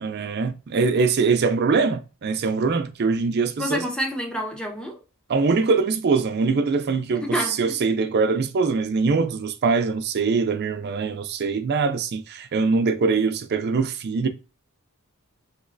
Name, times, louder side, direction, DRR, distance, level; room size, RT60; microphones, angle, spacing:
voice 1, 0.0-3.8 5.3-14.3, right 4 dB, 45° right, 0.4 m, -23 dB
voice 2, 3.6-5.0 7.2-7.7, equal, 5° left, 0.6 m, -28 dB
3.1 x 2.9 x 2.5 m
head